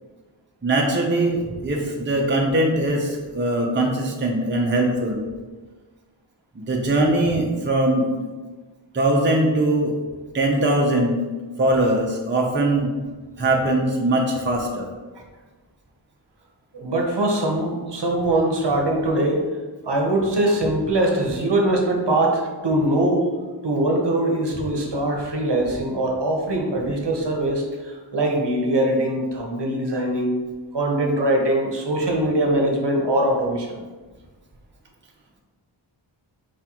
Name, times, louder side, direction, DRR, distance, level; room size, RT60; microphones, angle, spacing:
voice 1, 0.6-5.2 6.7-8.1 8.9-9.9 10.3-11.2 11.6-12.9 13.4-14.9, right 1 dB, 25° right, -1 dB, 0.7 m, -21 dB
voice 2, 16.7-19.4 19.8-23.3 23.6-30.4 30.7-33.8, right 1 dB, 55° right, 0 dB, 0.9 m, -22 dB
4.8 x 3.7 x 3.0 m, 1.3 s
wide cardioid pair, 65°, 48 cm